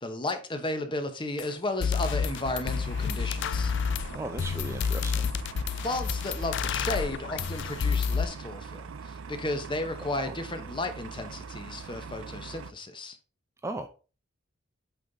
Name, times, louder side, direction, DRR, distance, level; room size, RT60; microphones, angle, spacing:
voice 1, 0.0-3.7 5.8-13.2, left 2 dB, 25° left, 0.9 m, -34 dB
sound 1, 1.4-1.5 1.8-8.2, left 6 dB, 60° left, 0.4 m, -29 dB
sound 2, 1.9-12.7, right 5 dB, 90° right, 0.5 m, -42 dB
voice 2, 3.9-5.3 10.2-10.3 13.6-13.9, right 2 dB, 15° right, 0.4 m, -37 dB
8.2 x 3.9 x 4.0 m
head